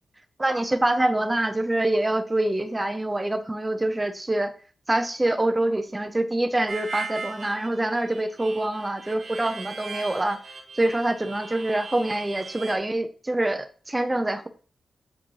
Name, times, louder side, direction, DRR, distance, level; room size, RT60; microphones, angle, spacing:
voice 1, 0.4-4.5 4.9-10.4 10.7-14.5, right 1 dB, 15° right, 0.7 m, -25 dB
Harmonica, 6.7-12.8, right 4 dB, 55° right, 1.4 m, -38 dB
8.6 x 4.3 x 4.7 m
wide cardioid pair, 175°, 0 cm